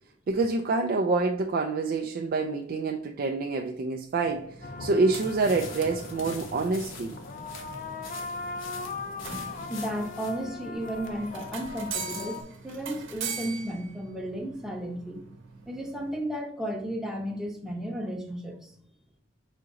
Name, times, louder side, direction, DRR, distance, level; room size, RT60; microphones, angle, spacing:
voice 1, 0.3-7.1, right 3 dB, 45° right, 3 dB, 0.4 m, -27 dB
sound 1, 4.2-16.2, right 6 dB, 80° right, 0.9 m, -43 dB
sound 2, 4.6-12.4, left 3 dB, 40° left, 0.5 m, -39 dB
sound 3, 5.1-10.5, left 5 dB, 80° left, 0.9 m, -46 dB
voice 2, 9.7-15.2 15.7-18.7, equal, 5° right, 0 dB, 0.7 m, -34 dB
5.0 x 2.8 x 3.7 m, 0.66 s
head